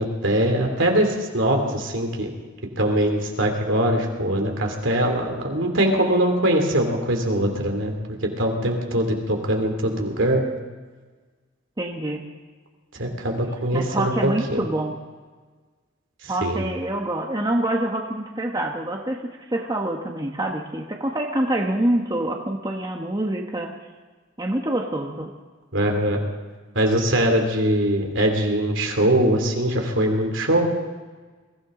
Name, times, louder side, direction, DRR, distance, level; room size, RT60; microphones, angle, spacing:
voice 1, 0.0-2.3 2.8-10.4 13.0-14.6 16.2-16.6 25.7-26.2 26.7-30.7, right 1 dB, 70° right, 3 dB, 2.9 m, -22 dB
voice 2, 11.8-12.2 13.7-15.0 16.3-23.7 24.4-25.3, right 1 dB, 20° right, 1 dB, 1.1 m, -26 dB
22.5 x 16.0 x 3.8 m, 1.4 s
head